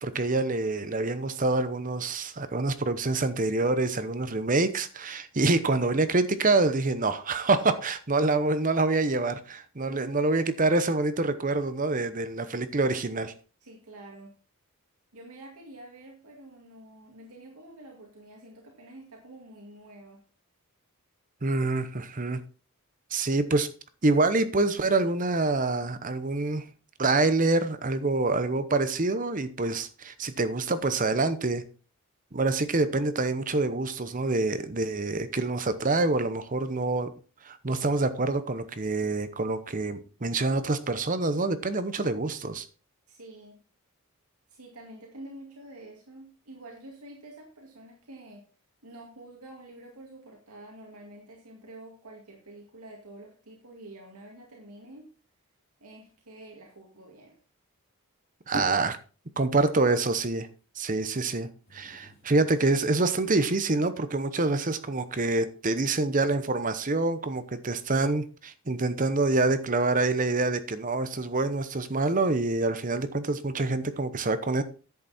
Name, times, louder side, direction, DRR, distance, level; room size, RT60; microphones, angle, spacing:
voice 1, 0.0-13.3 21.4-22.4 23.1-23.7 24.0-26.6 27.0-31.6 32.3-37.1 37.4-42.6 58.5-59.0 59.4-60.5 60.8-74.6, right 3 dB, 35° right, 0.8 m, -26 dB
voice 2, 9.9-10.2 13.6-14.4 15.1-20.2 43.1-43.6 44.5-48.4 48.8-55.1 55.8-57.4, right 1 dB, 85° right, 2.3 m, -48 dB
sound 1, 58.5-59.0 61.6-62.9 63.5-63.6, left 1 dB, 45° left, 2.4 m, -42 dB
10.5 x 8.2 x 4.3 m
head